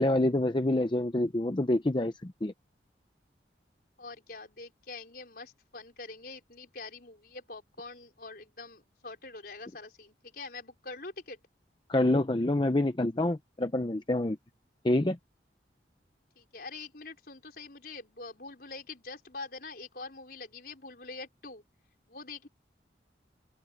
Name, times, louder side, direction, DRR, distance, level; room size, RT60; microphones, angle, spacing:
voice 1, 0.0-2.5 11.9-14.4 14.8-15.2, left 1 dB, 25° left, 0.7 m, -27 dB
voice 2, 4.0-11.4 16.4-21.6 22.1-22.5, left 3 dB, 55° left, 4.8 m, -44 dB
open air
head